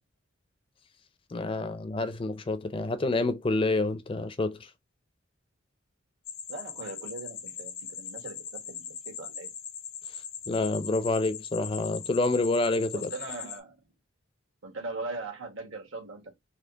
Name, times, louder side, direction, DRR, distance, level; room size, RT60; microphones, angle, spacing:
voice 1, 1.3-4.6 10.5-13.1, left 2 dB, 25° left, 0.4 m, -28 dB
sound 1, 6.3-13.6, left 8 dB, 90° left, 1.0 m, -41 dB
voice 2, 6.5-9.5 12.9-13.7 14.6-16.3, right 3 dB, 75° right, 1.6 m, -40 dB
4.1 x 3.0 x 2.8 m
head